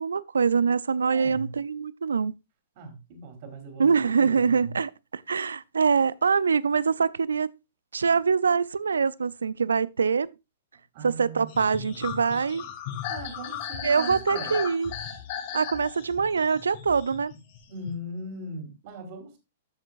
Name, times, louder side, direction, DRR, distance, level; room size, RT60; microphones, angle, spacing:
voice 1, 0.0-2.3 3.8-7.5 7.9-10.3 11.0-12.7 13.8-14.9 15.5-17.3, right 5 dB, 70° right, 0.4 m, -24 dB
voice 2, 1.1-1.6 2.8-4.8 10.9-12.1 13.1-14.6 17.7-19.4, right 1 dB, 45° right, 3.6 m, -39 dB
sound 1, 11.5-17.9, left 9 dB, 45° left, 2.2 m, -36 dB
12.5 x 7.4 x 2.5 m
figure-of-eight pair, 105°, 0 cm